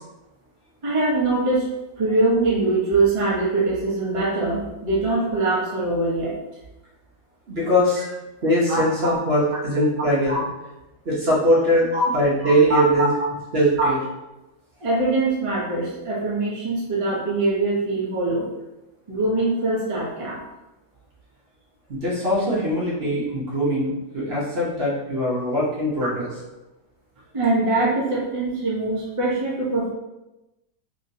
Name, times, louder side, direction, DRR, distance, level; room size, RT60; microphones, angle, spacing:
voice 1, 0.8-1.6 2.0-6.4 8.0-8.1 8.7-9.1 10.3-10.4 11.9-12.0 12.7-13.1 13.8-13.9 14.8-18.5 19.1-20.4 27.3-29.9, right 2 dB, 30° right, -6 dB, 0.8 m, -23 dB
voice 2, 7.5-8.1 8.4-10.4 11.0-11.9 12.1-13.1 13.5-14.0 21.9-26.3, equal, 50° right, -7 dB, 1.1 m, -21 dB
3.0 x 2.8 x 2.7 m, 0.99 s
omnidirectional pair, 1.4 m